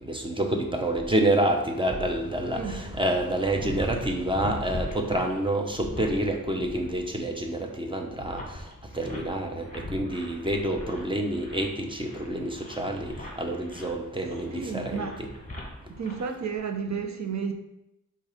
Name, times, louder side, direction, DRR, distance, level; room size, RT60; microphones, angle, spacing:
voice 1, 0.0-8.6 8.9-15.3, right 1 dB, 15° right, 0.9 m, -28 dB
sound 1, 1.9-16.6, left 1 dB, 25° left, 1.4 m, -41 dB
voice 2, 2.5-2.9 14.5-15.2 15.9-17.5, right 6 dB, 60° right, 0.7 m, -32 dB
5.3 x 3.8 x 5.1 m
wide cardioid pair, 115°, 32 cm